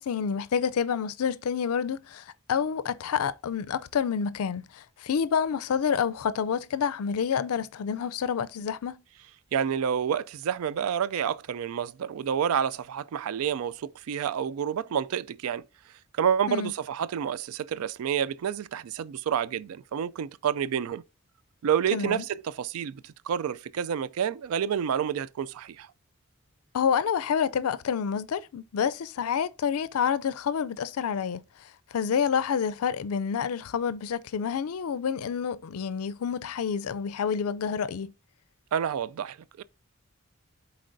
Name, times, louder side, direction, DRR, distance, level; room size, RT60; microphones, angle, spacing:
voice 1, 0.0-9.0 16.5-16.7 21.9-22.2 26.7-31.4 31.9-38.1, left 7 dB, 85° left, 0.4 m, -28 dB
voice 2, 9.5-15.6 16.1-21.0 21.6-25.9 38.7-39.6, right 8 dB, 80° right, 0.3 m, -29 dB
11.5 x 4.2 x 2.6 m
head